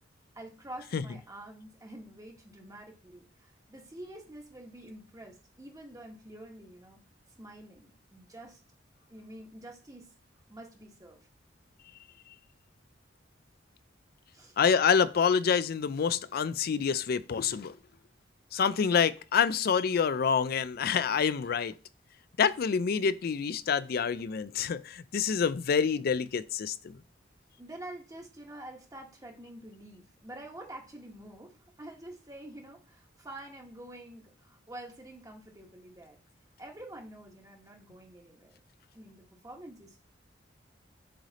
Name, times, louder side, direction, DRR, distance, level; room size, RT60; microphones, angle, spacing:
voice 1, 0.3-7.0 7.3-8.6 9.1-10.1 10.5-11.2 14.3-14.6 27.6-36.2 36.6-38.6 38.9-40.0, right 1 dB, 20° right, 1.3 m, -47 dB
voice 2, 14.6-17.8 18.5-21.8 22.4-27.0, left 6 dB, 55° left, 0.4 m, -27 dB
7.6 x 3.3 x 4.1 m
head